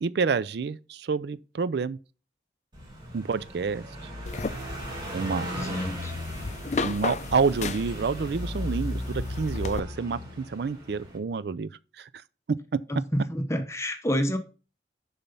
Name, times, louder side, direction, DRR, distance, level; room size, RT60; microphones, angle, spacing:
voice 1, 0.0-2.0 3.1-3.8 5.1-5.5 6.8-11.7 12.0-12.1, right 5 dB, 65° right, 0.4 m, -28 dB
Car passing by, 2.7-11.2, left 1 dB, 25° right, 3.8 m, -36 dB
sound 1, 4.3-9.8, left 3 dB, 40° left, 0.5 m, -35 dB
voice 2, 5.5-6.1 12.9-14.4, equal, 15° left, 0.9 m, -28 dB
7.1 x 5.6 x 5.4 m
head